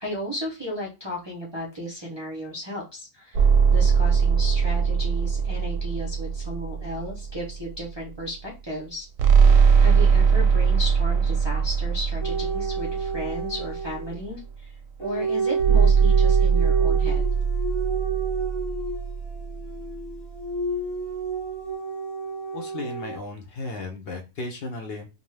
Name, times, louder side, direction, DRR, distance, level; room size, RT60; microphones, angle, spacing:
voice 1, 0.0-9.1 9.3-9.5 9.8-17.3, equal, 30° right, -4 dB, 0.5 m, -35 dB
sound 1, 3.3-7.8 9.2-14.0 15.6-19.9, right 6 dB, 85° right, 1.0 m, -21 dB
sound 2, 12.2-14.2 15.0-23.2, right 4 dB, 30° left, 0.5 m, -30 dB
voice 2, 22.5-25.1, left 2 dB, 60° left, 3 dB, 0.8 m, -35 dB
2.5 x 2.3 x 3.2 m, 0.29 s
omnidirectional pair, 1.3 m